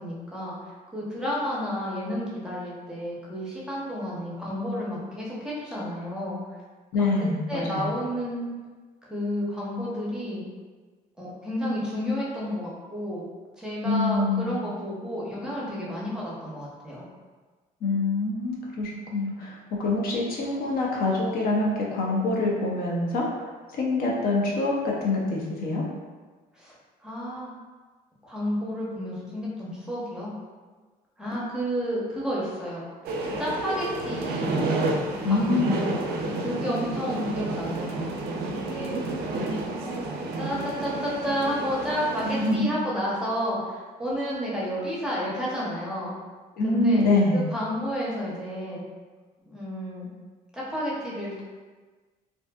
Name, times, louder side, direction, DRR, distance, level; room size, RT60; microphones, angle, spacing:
voice 1, 0.0-6.4 7.0-7.1 7.5-8.5 9.1-10.5 11.2-13.3 13.6-17.0 26.5-26.7 27.0-27.5 28.2-30.3 31.2-32.9 33.4-34.6 35.2-36.0 36.4-38.4 38.7-38.9 39.8-46.2 46.6-48.8 49.5-50.1 50.5-51.4, equal, 5° right, -6 dB, 0.7 m, -31 dB
voice 2, 6.9-7.9 13.8-14.6 17.8-23.4 23.7-25.8 35.2-35.8 42.2-42.5 46.6-47.4, left 2 dB, 60° left, -3 dB, 0.6 m, -25 dB
sound 1, 33.0-42.6, right 2 dB, 70° right, 0.4 m, -30 dB
2.5 x 2.4 x 2.3 m, 1.4 s
cardioid pair, 110°, 17 cm